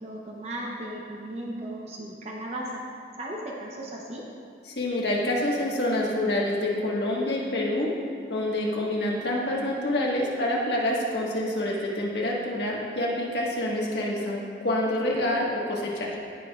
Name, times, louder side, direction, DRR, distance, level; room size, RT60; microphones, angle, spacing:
voice 1, 0.0-2.8 3.2-4.3, right 1 dB, 35° right, -2 dB, 0.8 m, -36 dB
voice 2, 4.8-7.9 8.3-16.1, left 1 dB, 75° left, -3 dB, 1.4 m, -27 dB
17.0 x 5.7 x 2.4 m, 2.3 s
head